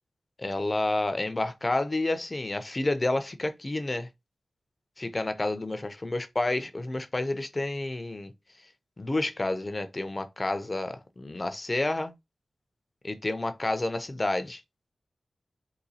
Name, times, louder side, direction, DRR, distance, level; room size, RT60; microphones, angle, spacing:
voice 1, 0.4-4.1 5.0-8.3 9.0-12.1 13.0-14.6, left 2 dB, 25° left, 0.4 m, -30 dB
3.9 x 2.6 x 2.7 m
wide cardioid pair, 140°, 0 cm